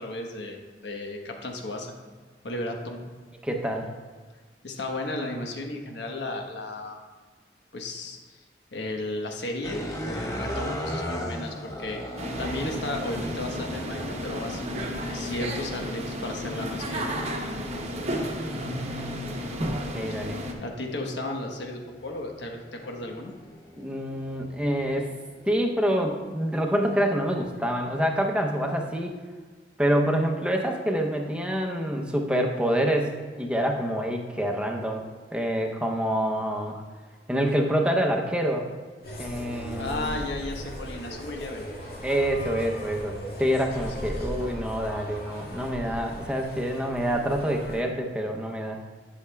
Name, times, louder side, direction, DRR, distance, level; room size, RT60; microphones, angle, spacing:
voice 1, 0.0-1.9 2.4-3.1 4.6-7.0 7.7-8.4 8.7-12.0 12.4-17.1 20.1-20.2 20.6-23.3 39.7-41.6 44.1-44.4, left 2 dB, 90° left, 2 dB, 1.1 m, -34 dB
voice 2, 3.4-3.9 18.5-19.3 19.7-20.4 23.7-25.1 25.5-29.1 29.8-35.1 35.3-36.8 37.3-38.7 39.2-40.2 42.0-48.8, equal, 5° right, 2 dB, 0.7 m, -27 dB
sound 1, 9.6-25.9 26.6-29.1, equal, 20° left, 0.9 m, -40 dB
sound 2, 12.2-20.5, equal, 40° right, 0.8 m, -33 dB
sound 3, 39.0-47.8, equal, 60° left, 2.0 m, -38 dB
11.5 x 7.0 x 2.3 m, 1.4 s
head